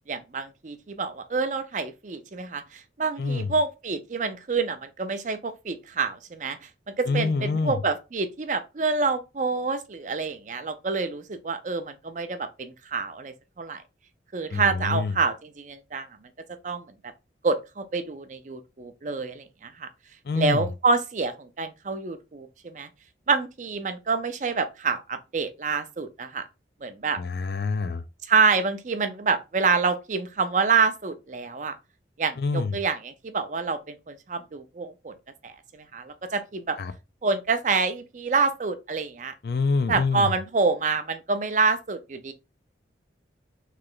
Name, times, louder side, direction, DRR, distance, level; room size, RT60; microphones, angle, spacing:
voice 1, 0.1-6.7 7.0-13.8 14.3-16.1 16.6-16.8 17.4-19.9 20.4-22.9 23.3-26.5 26.8-27.2 28.2-31.8 32.2-35.1 35.4-36.8 37.2-39.3 39.9-42.3, right 4 dB, 40° right, 0.5 m, -27 dB
voice 2, 3.2-3.5 7.1-7.8 14.5-15.2 20.3-20.6 27.2-28.0 32.4-32.8 36.8-36.9 39.4-40.3, left 4 dB, 55° left, 0.4 m, -26 dB
3.2 x 2.9 x 3.9 m
head